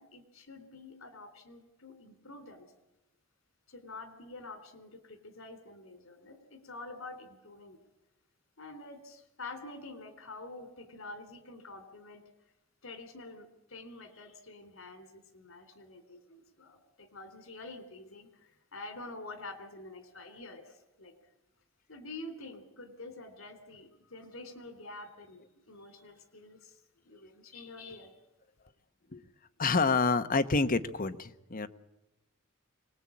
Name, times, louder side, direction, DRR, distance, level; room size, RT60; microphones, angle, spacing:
voice 1, 0.0-2.7 3.7-7.8 8.6-12.2 12.8-21.1 21.9-28.2, left 2 dB, 85° left, 9 dB, 3.5 m, -47 dB
voice 2, 29.6-31.7, left 4 dB, 45° left, 10 dB, 1.1 m, -28 dB
25.0 x 19.5 x 8.6 m, 0.92 s
head